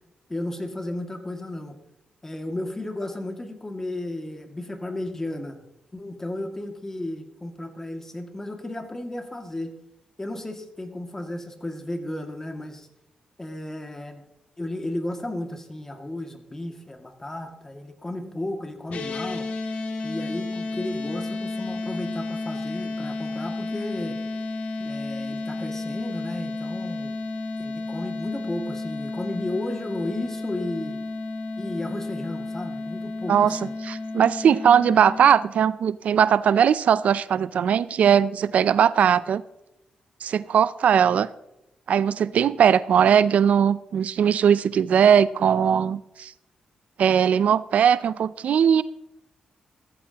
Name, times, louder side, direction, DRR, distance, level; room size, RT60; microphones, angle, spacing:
voice 1, 0.3-1.7 2.2-5.6 5.9-9.7 10.2-12.9 13.4-14.2 14.6-19.5 20.0-24.2 24.8-27.1 27.6-31.0 31.6-33.7, left 1 dB, 20° left, 4 dB, 2.1 m, -34 dB
sound 1, 18.9-35.2, left 3 dB, 75° left, 2.0 m, -32 dB
voice 2, 33.3-39.4 40.2-41.3 41.9-46.3 47.0-48.8, right 8 dB, 75° right, 16 dB, 0.4 m, -19 dB
15.5 x 14.5 x 2.9 m, 0.88 s
cardioid pair, 85°, 2 cm